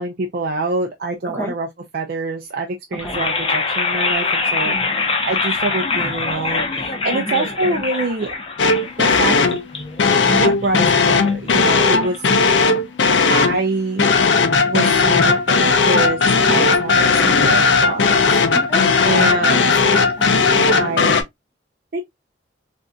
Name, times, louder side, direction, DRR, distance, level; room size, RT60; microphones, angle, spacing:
voice 1, 0.0-1.7 1.9-4.7 5.1-8.3 8.7-9.4 10.2-12.2 13.3-14.1 14.6-16.2 16.5-18.4 19.0-19.8 20.7-21.2 21.9-22.0, right 3 dB, 50° right, 0.5 m, -25 dB
sound 1, 2.9-13.0, left 3 dB, 30° left, 0.6 m, -24 dB
voice 2, 4.6-5.0 7.1-7.4 12.0-12.1 16.5-16.6 18.5-18.8 19.1-20.9, equal, 10° left, 1.0 m, -32 dB
sound 2, 8.6-9.6 10.0-13.6 14.0-21.2, left 4 dB, 75° left, 0.5 m, -16 dB
3.7 x 2.6 x 2.2 m
head